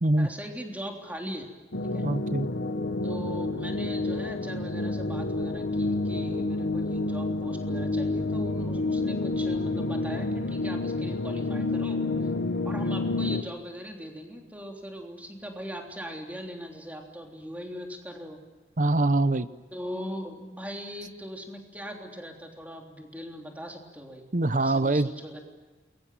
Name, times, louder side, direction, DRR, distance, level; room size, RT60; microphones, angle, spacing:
voice 1, 0.2-1.5 1.8-2.1 3.0-12.3 12.6-18.4 19.7-24.2 24.6-25.4, equal, 10° right, 1 dB, 3.4 m, -40 dB
sound 1, 1.7-13.4, left 2 dB, 85° left, 1.4 m, -29 dB
voice 2, 2.0-2.5 18.8-19.5 24.3-25.1, right 2 dB, 45° right, 13 dB, 0.8 m, -23 dB
28.5 x 22.5 x 7.7 m, 1.3 s
head